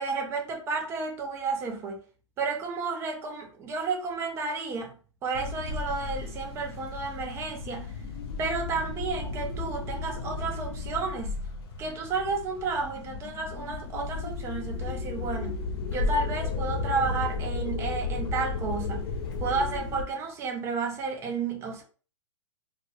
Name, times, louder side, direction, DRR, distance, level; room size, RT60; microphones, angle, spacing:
voice 1, 0.0-2.0 2.4-4.9 5.2-7.9 8.4-11.4 11.8-15.6 15.9-19.1 19.4-21.8, right 4 dB, 15° right, 0.4 m, -32 dB
sound 1, 5.3-20.0, left 4 dB, 50° left, 0.6 m, -34 dB
2.2 x 2.1 x 2.9 m
hypercardioid pair, 140°, 17 cm